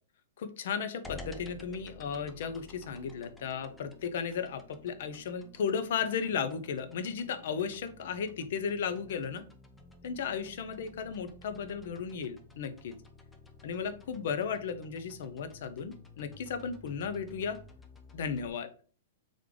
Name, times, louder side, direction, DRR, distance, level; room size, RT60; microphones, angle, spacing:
voice 1, 0.4-9.4 10.0-13.0 13.6-17.6 18.1-18.7, left 6 dB, 60° left, 10 dB, 0.6 m, -35 dB
sound 1, 1.0-18.5, left 2 dB, 10° left, 0.4 m, -52 dB
3.5 x 3.2 x 3.7 m, 0.41 s
hypercardioid pair, 155°, 0 cm